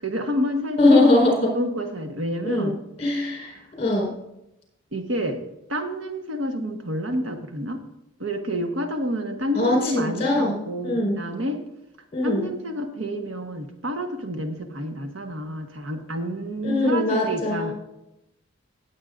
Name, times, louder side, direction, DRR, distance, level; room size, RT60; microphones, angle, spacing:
voice 1, 0.0-1.1 1.5-2.8 3.5-3.7 4.9-5.4 5.7-7.8 8.2-11.6 12.2-17.7, equal, 75° right, 5 dB, 1.4 m, -29 dB
voice 2, 0.8-1.5 2.4-2.7 3.0-4.1 9.5-11.2 12.1-12.5 16.6-17.7, left 2 dB, 30° left, -1 dB, 4.9 m, -21 dB
18.0 x 8.4 x 2.6 m, 0.85 s
head